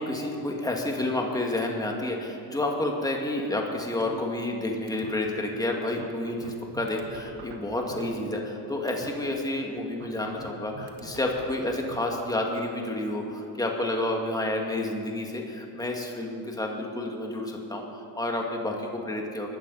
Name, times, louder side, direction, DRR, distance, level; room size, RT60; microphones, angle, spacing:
voice 1, 0.0-15.4 15.7-19.6, left 1 dB, 10° left, 0 dB, 2.3 m, -30 dB
sound 1, 4.0-4.6 4.9-5.1 5.6-5.7 6.0-8.6 8.9-9.1 10.0-12.0, right 7 dB, 65° right, 1.8 m, -45 dB
20.0 x 12.5 x 4.3 m, 2.7 s
supercardioid pair, 75°, 46 cm